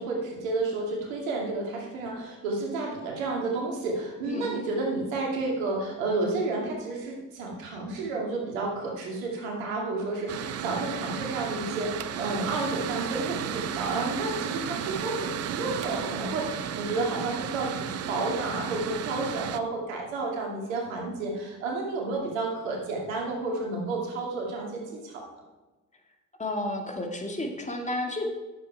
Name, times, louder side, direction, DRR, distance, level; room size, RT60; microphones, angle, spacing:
voice 1, 0.0-25.3, right 3 dB, 75° right, 0 dB, 2.4 m, -31 dB
Mechanical fan, 10.3-19.6, right 8 dB, 40° right, 0.7 m, -33 dB
voice 2, 26.4-28.3, left 1 dB, 20° left, 2 dB, 2.2 m, -31 dB
10.5 x 7.6 x 4.7 m, 1.2 s
hypercardioid pair, 55°, 40 cm